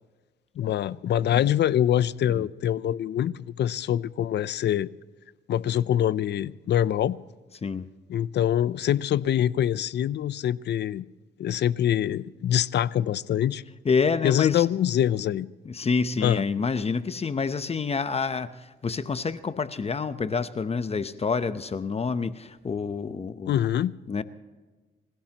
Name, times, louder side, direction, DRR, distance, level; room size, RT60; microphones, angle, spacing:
voice 1, 0.6-4.9 5.5-7.2 8.1-11.0 11.4-13.6 14.2-15.5 16.2-16.4 23.5-24.0, left 10 dB, 60° left, 0.6 m, -24 dB
voice 2, 13.8-14.7 15.6-23.6 24.1-24.2, left 5 dB, 30° left, 0.8 m, -28 dB
26.5 x 16.5 x 3.0 m
cardioid pair, 90°, 20 cm